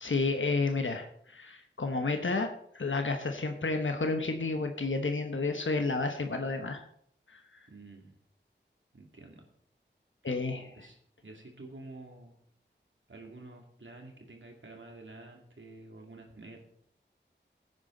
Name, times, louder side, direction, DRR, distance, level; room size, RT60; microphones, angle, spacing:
voice 1, 0.0-2.5 2.7-6.8 7.3-7.7 10.2-10.7, left 3 dB, 85° left, 5 dB, 1.1 m, -31 dB
voice 2, 7.7-8.2 8.9-9.5 10.7-12.3 13.1-16.6, right 2 dB, 85° right, 2 dB, 2.5 m, -49 dB
16.0 x 9.4 x 3.9 m, 0.68 s
wide cardioid pair, 50°, 19 cm